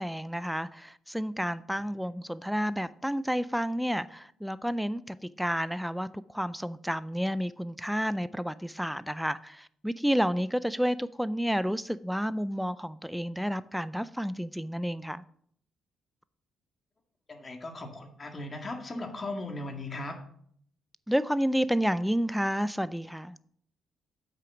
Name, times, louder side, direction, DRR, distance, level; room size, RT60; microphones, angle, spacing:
voice 1, 0.0-15.2 21.1-23.4, equal, ahead, 0.3 m, -30 dB
voice 2, 17.3-20.2, left 2 dB, 30° left, 1.8 m, -38 dB
8.3 x 6.0 x 5.9 m
cardioid pair, 90°, 0 cm